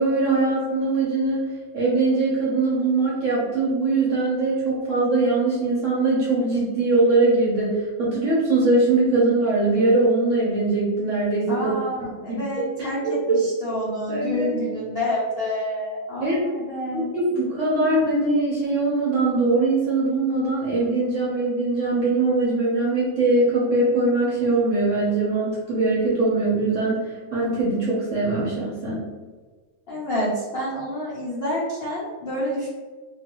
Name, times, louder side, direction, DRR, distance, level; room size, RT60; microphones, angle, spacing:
voice 1, 0.0-1.4 1.7-11.7 12.2-12.4 13.0-13.1 14.1-14.5 16.2-16.4 16.9-29.0, right 2 dB, 55° right, -6 dB, 0.9 m, -21 dB
voice 2, 11.5-17.1 29.9-32.7, left 1 dB, 60° left, -8 dB, 0.6 m, -28 dB
2.8 x 2.8 x 2.9 m, 1.4 s
omnidirectional pair, 2.0 m